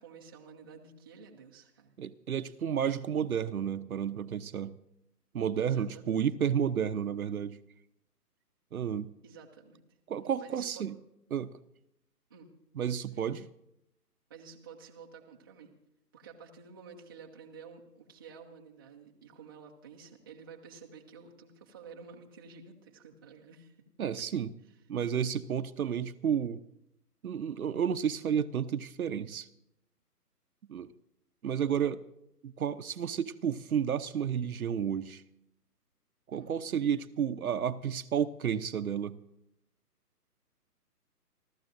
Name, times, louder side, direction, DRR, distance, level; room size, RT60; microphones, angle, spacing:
voice 1, 0.0-1.9 5.6-6.2 9.2-9.8 10.4-10.9 12.3-12.5 13.1-13.3 14.3-15.7 16.1-23.7 36.3-36.6, right 5 dB, 15° right, -1 dB, 0.6 m, -51 dB
voice 2, 2.0-4.8 5.3-7.6 8.7-9.1 10.1-11.0 11.3-11.5 12.7-13.5 24.0-24.5 24.9-26.6 27.2-29.5 30.7-30.9 31.4-32.0 32.4-35.2 36.3-39.2, right 8 dB, 60° right, 12 dB, 0.7 m, -31 dB
29.0 x 13.0 x 2.6 m, 0.80 s
figure-of-eight pair, 140°, 48 cm